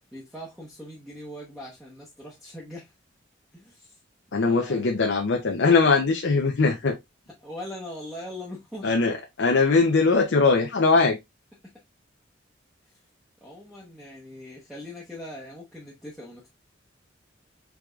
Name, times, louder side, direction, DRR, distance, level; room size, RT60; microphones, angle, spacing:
voice 1, 0.1-2.9 3.5-4.0 4.4-5.1 7.4-8.9 11.6-11.7 12.9-13.0 13.4-16.5, left 1 dB, ahead, 0.9 m, -41 dB
voice 2, 4.3-7.0 8.8-11.2, left 4 dB, 65° left, 0.6 m, -21 dB
4.6 x 3.7 x 2.3 m
head